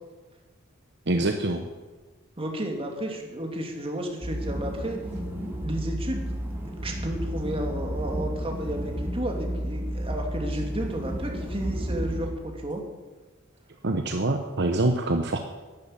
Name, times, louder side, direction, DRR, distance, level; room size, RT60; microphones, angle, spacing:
voice 1, 1.1-1.6 13.8-15.4, right 2 dB, 55° right, 5 dB, 1.0 m, -25 dB
voice 2, 2.4-5.0 5.6-6.4 6.7-12.8, right 1 dB, 25° right, 2 dB, 2.5 m, -32 dB
sound 1, 4.2-12.3, equal, 10° right, 3.0 m, -32 dB
11.5 x 11.0 x 8.6 m, 1.3 s
head